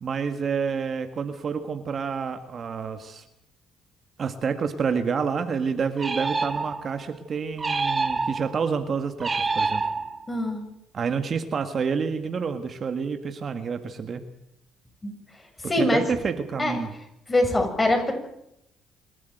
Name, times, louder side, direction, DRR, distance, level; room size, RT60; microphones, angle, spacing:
voice 1, 0.0-3.2 4.2-9.8 10.9-14.2 15.6-16.9, right 6 dB, 45° right, 8 dB, 1.7 m, -28 dB
sound 1, 6.0-7.0 7.6-8.6 9.2-10.4, right 4 dB, 25° right, 1.3 m, -27 dB
voice 2, 10.3-10.6 15.0-15.1 15.6-16.1 16.6-16.8 17.3-18.1, left 1 dB, 20° left, 4 dB, 7.0 m, -23 dB
27.0 x 12.5 x 9.3 m, 0.83 s
cardioid pair, 85°, 0 cm